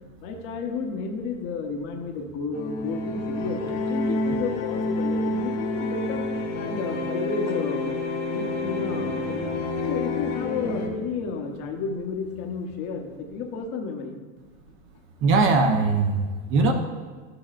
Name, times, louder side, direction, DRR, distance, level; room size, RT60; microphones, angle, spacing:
voice 1, 0.2-7.9 8.3-9.5 9.9-14.1, left 5 dB, 55° left, 4 dB, 1.0 m, -32 dB
sound 1, 2.5-10.9, left 2 dB, 85° left, 1.6 m, -28 dB
voice 2, 15.2-16.7, right 3 dB, 35° right, 5 dB, 0.7 m, -20 dB
10.5 x 7.8 x 2.5 m, 1.4 s
supercardioid pair, 135°, 35 cm